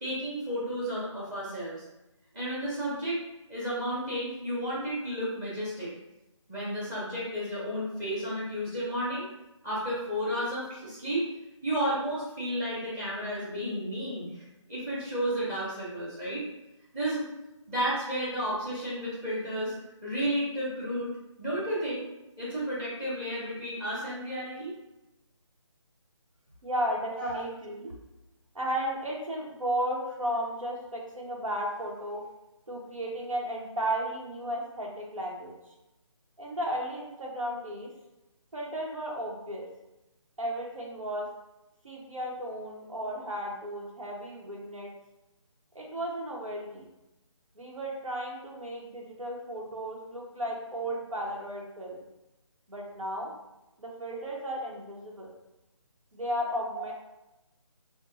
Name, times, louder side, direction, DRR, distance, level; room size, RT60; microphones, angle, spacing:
voice 1, 0.0-1.8 2.3-3.2 3.5-5.9 6.5-9.3 9.6-11.2 11.6-16.4 16.9-17.2 17.7-19.7 20.0-22.0 22.4-24.7 27.2-27.4 56.7-56.8, equal, 10° right, -8 dB, 0.8 m, -32 dB
voice 2, 26.6-27.9 28.5-32.2 32.7-35.5 36.4-37.9 38.5-39.7 40.4-41.3 41.8-44.9 45.7-46.9 47.5-52.0 52.7-53.3 53.8-55.3 56.1-56.9, equal, 90° right, -2 dB, 1.0 m, -34 dB
4.3 x 2.2 x 2.7 m, 0.94 s
figure-of-eight pair, 160°, 17 cm